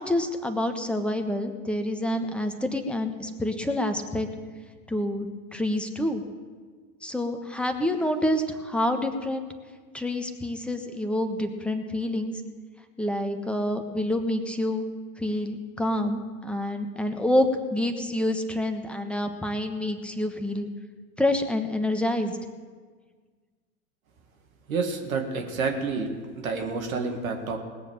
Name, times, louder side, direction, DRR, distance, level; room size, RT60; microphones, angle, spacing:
voice 1, 0.0-4.3 4.9-6.2 7.0-9.5 9.9-12.3 13.0-14.8 15.2-20.7 21.2-22.4, left 1 dB, 5° left, 6 dB, 1.2 m, -27 dB
voice 2, 24.7-26.1 26.4-27.6, right 4 dB, 70° right, 3 dB, 2.1 m, -28 dB
19.5 x 7.1 x 7.3 m, 1.5 s
figure-of-eight pair, 90°, 43 cm